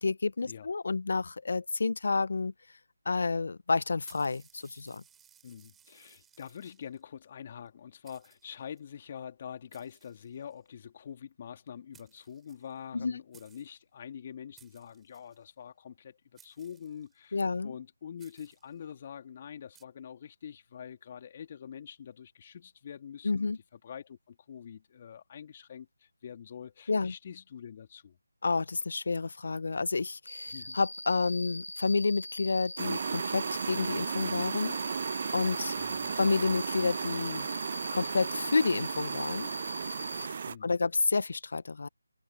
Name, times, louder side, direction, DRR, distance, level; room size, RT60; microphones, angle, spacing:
voice 1, 0.0-2.5 3.0-5.0 12.9-13.1 17.3-17.7 23.2-23.6 26.9-27.1 28.4-34.8 35.3-35.7 36.2-37.5 37.9-39.5 40.2-41.9, left 4 dB, 55° left, 1.0 m, -30 dB
sound 1, 4.0-7.0 7.7-7.8 8.0-8.8 9.7-10.7 11.7-11.8 11.9-13.0 13.3-13.8 14.5-15.4 16.4-17.3 18.2-18.8 19.7-19.8, right 8 dB, 5° right, 7.4 m, -62 dB
voice 2, 5.4-23.5 23.8-28.2 30.5-30.8 35.7-36.2 40.5-40.7, left 8 dB, 30° left, 2.6 m, -45 dB
Cricket, 30.3-40.3, left 1 dB, 85° left, 1.9 m, -42 dB
sound 2, 32.8-40.6, right 6 dB, 35° right, 0.3 m, -35 dB
figure-of-eight pair, 160°, 0 cm